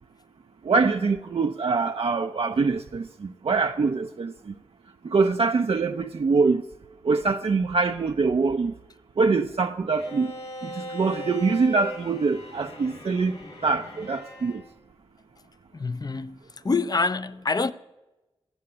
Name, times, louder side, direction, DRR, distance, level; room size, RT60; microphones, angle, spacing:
voice 1, 0.6-4.5 5.0-6.6 7.0-8.7 9.2-10.3 10.6-13.4 13.6-14.6, right 4 dB, 70° right, 0.5 m, -24 dB
Bowed string instrument, 10.0-14.6, equal, 85° left, 5.5 m, -39 dB
voice 2, 15.7-16.4 16.6-17.7, left 4 dB, 40° left, 0.6 m, -26 dB
16.0 x 7.0 x 9.7 m
wide cardioid pair, 75°, 10 cm